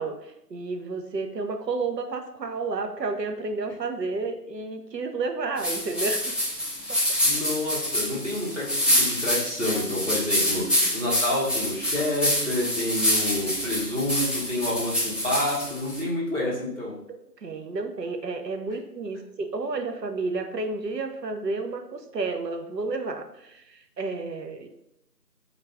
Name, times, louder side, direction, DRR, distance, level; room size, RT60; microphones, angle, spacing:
voice 1, 0.0-6.3 10.5-10.9 17.4-24.7, right 3 dB, 75° right, 5 dB, 0.6 m, -31 dB
sound 1, 5.6-16.0, left 1 dB, ahead, 0.5 m, -26 dB
voice 2, 7.2-17.0, left 1 dB, 45° right, -7 dB, 1.0 m, -28 dB
3.3 x 2.4 x 3.3 m, 0.82 s
figure-of-eight pair, 180°, 50 cm